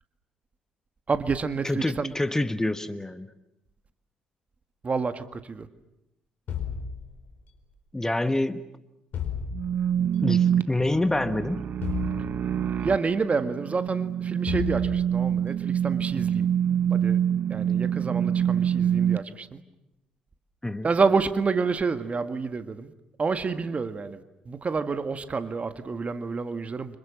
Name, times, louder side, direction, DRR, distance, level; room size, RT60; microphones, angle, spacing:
voice 1, 1.1-2.1 4.8-5.7 12.8-16.5 16.9-17.2 17.5-19.6 20.8-22.9 23.2-27.0, right 4 dB, 35° right, 1.9 m, -28 dB
voice 2, 1.6-3.3 7.9-8.7 10.2-11.6 20.6-20.9, left 2 dB, 15° left, 1.4 m, -27 dB
sound 1, 6.5-7.6 9.1-10.1 11.8-12.9 14.5-15.4, left 7 dB, 55° left, 4.8 m, -34 dB
sound 2, 9.5-19.2, right 9 dB, 50° right, 1.3 m, -26 dB
30.0 x 26.0 x 7.4 m
hypercardioid pair, 50°, 4 cm